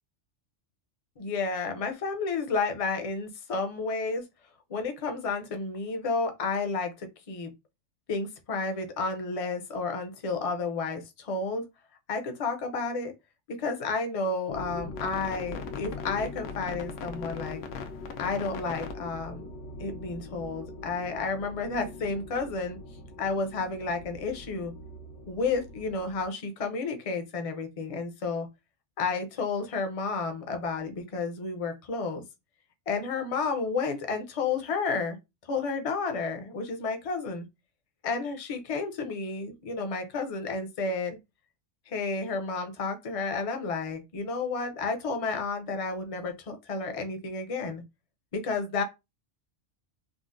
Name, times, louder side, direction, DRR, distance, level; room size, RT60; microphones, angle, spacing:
voice 1, 1.2-4.2 4.7-7.5 8.1-11.6 12.1-13.1 13.5-17.6 18.2-19.5 19.8-22.8 23.2-24.7 25.3-28.5 29.0-32.2 32.9-35.2 35.5-37.5 38.0-41.2 41.9-47.8 48.3-48.8, left 4 dB, 45° left, 0.5 m, -31 dB
sound 1, 14.5-26.3, left 3 dB, 85° left, 0.9 m, -41 dB
3.8 x 2.1 x 2.5 m
omnidirectional pair, 1.3 m